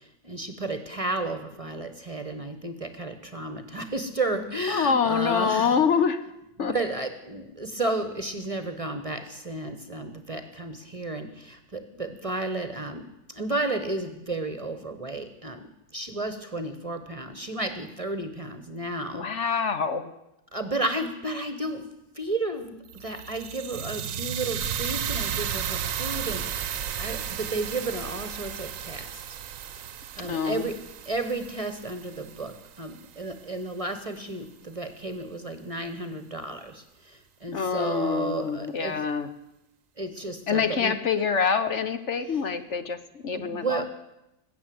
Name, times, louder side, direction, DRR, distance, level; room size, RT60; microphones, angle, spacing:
voice 1, 0.0-5.8 6.6-15.7 15.9-19.2 20.5-21.8 22.1-29.2 30.2-30.7 31.1-39.0 40.0-40.9 43.3-43.9, right 2 dB, 25° right, 9 dB, 1.1 m, -32 dB
voice 2, 4.7-6.3 6.6-6.7 19.1-20.1 30.2-30.7 37.5-39.3 40.5-43.9, left 6 dB, 60° left, 10 dB, 1.1 m, -26 dB
sound 1, 22.9-33.0, right 9 dB, 65° right, 1.1 m, -34 dB
20.5 x 8.5 x 7.7 m, 0.89 s
omnidirectional pair, 1.5 m